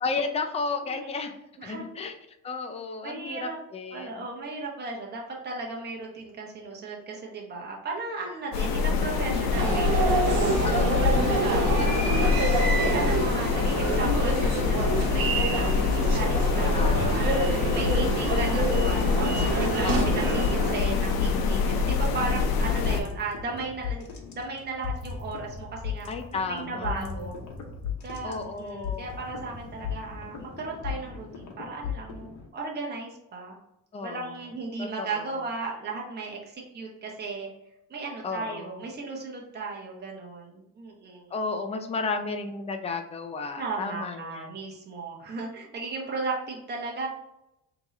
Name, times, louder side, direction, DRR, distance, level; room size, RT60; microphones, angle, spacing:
voice 1, 0.0-1.3 1.6-2.1 2.4-4.1 10.6-11.4 11.8-12.6 16.7-17.2 19.8-20.3 26.1-27.3 28.2-29.2 33.9-34.3 34.8-35.3 38.2-38.8 41.3-44.6, left 4 dB, 20° left, 5 dB, 0.4 m, -33 dB
voice 2, 3.0-3.6 3.9-10.7 11.4-12.0 12.6-26.1 26.5-27.4 28.0-33.6 34.0-37.5 37.9-41.3 43.6-47.1, right 3 dB, 30° right, -2 dB, 0.9 m, -36 dB
sound 1, 8.5-23.0, left 5 dB, 80° left, 0.7 m, -25 dB
sound 2, 9.5-20.7, right 3 dB, 70° right, 1.1 m, -27 dB
sound 3, 14.3-16.4 16.8-32.5, left 7 dB, 55° left, 1.0 m, -37 dB
3.5 x 2.9 x 4.1 m, 0.87 s
cardioid pair, 115°, 35 cm